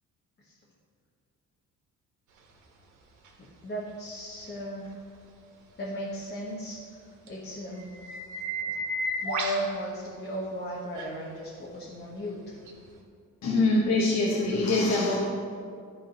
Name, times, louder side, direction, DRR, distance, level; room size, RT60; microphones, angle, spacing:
sound 1, 3.2-3.3 7.3-7.4 7.8-9.7 10.9-11.1 12.7-12.8, right 1 dB, 75° right, 1.4 m, -32 dB
voice 1, 3.4-4.9 5.8-7.9 8.6-8.7 9.2-12.6, equal, 35° left, -4 dB, 1.2 m, -36 dB
voice 2, 13.4-15.2, left 2 dB, 60° left, -4 dB, 1.2 m, -24 dB
10.5 x 3.8 x 5.1 m, 2.3 s
cardioid pair, 90°, 30 cm